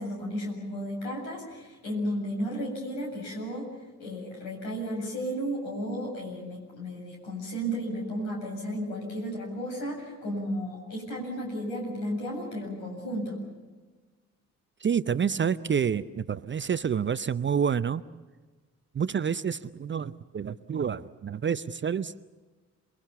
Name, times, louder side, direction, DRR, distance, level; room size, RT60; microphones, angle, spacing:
voice 1, 0.0-3.7 4.0-13.4, equal, 70° left, 0 dB, 7.8 m, -33 dB
voice 2, 14.8-18.0 18.9-22.1, right 7 dB, 25° right, 16 dB, 0.7 m, -28 dB
28.5 x 21.5 x 7.0 m, 1.3 s
figure-of-eight pair, 40°, 43 cm